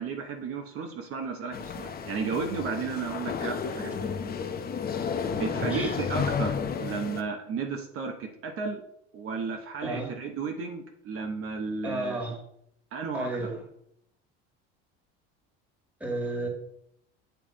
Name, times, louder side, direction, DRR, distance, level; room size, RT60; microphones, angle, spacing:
voice 1, 0.0-4.3 5.4-6.5 6.8-8.8 9.1-12.2 12.9-13.3, right 5 dB, 50° right, 3 dB, 1.0 m, -33 dB
sound 1, 1.5-7.2, left 6 dB, 30° left, 0.8 m, -32 dB
voice 2, 5.5-6.0 9.8-10.1 11.8-12.4 13.1-13.6 16.0-16.5, right 2 dB, 5° right, 0 dB, 1.9 m, -32 dB
9.1 x 3.5 x 3.7 m, 0.73 s
supercardioid pair, 100°, 29 cm